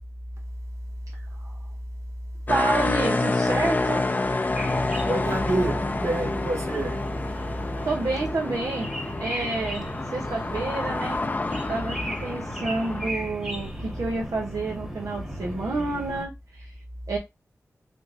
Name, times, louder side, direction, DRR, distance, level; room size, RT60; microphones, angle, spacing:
sound 1, 2.5-13.1, left 2 dB, 30° left, 0.5 m, -28 dB
voice 1, 2.5-4.0 7.8-8.9 9.2-11.2 11.7-16.7 17.1-17.2, right 2 dB, 80° right, 0.7 m, -29 dB
sound 2, 4.5-16.3, equal, 10° right, 1.1 m, -36 dB
voice 2, 5.0-7.2, right 2 dB, 60° right, 1.0 m, -27 dB
3.4 x 2.9 x 2.5 m
cardioid pair, 55°, 5 cm